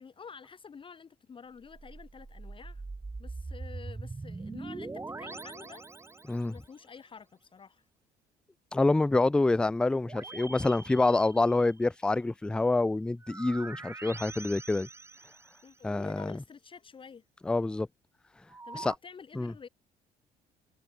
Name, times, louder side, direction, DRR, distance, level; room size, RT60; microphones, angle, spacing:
voice 1, 0.0-2.8 3.2-6.1 6.4-7.8 15.6-17.2 18.6-19.7, left 6 dB, 30° left, 1.3 m, -49 dB
sound 1, 1.6-6.7 10.0-11.8 13.2-15.8 18.5-19.0, right 3 dB, 15° right, 1.1 m, -43 dB
voice 2, 8.7-14.9 15.8-16.4 17.5-17.9 18.7-18.9 19.4-19.5, left 2 dB, 5° left, 0.3 m, -27 dB
cardioid pair, 110°, 17 cm